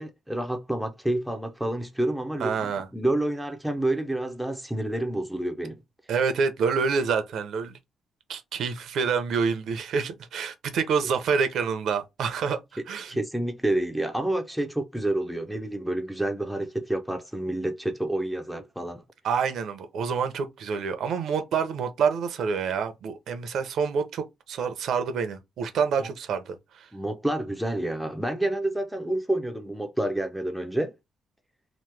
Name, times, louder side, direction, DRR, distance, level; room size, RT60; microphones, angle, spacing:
voice 1, 0.0-5.8 13.1-19.0 26.0-26.1 26.9-30.9, right 1 dB, ahead, 0.4 m, -29 dB
voice 2, 2.4-2.9 6.1-7.8 8.3-13.2 19.2-26.9, right 6 dB, 65° right, 0.6 m, -27 dB
3.0 x 2.1 x 3.2 m
cardioid pair, 175°, 0 cm